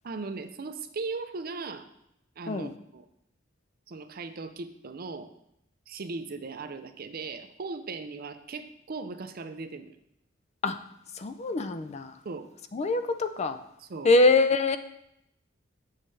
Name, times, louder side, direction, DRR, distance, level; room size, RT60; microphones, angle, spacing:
voice 1, 0.0-1.9 2.4-3.1 3.9-5.3 5.9-9.9 12.2-12.5 13.8-14.1, right 4 dB, 50° right, 9 dB, 0.5 m, -38 dB
voice 2, 11.2-12.1 12.7-13.6 14.0-14.8, left 3 dB, 35° left, 10 dB, 0.4 m, -24 dB
7.4 x 6.3 x 3.3 m, 0.78 s
head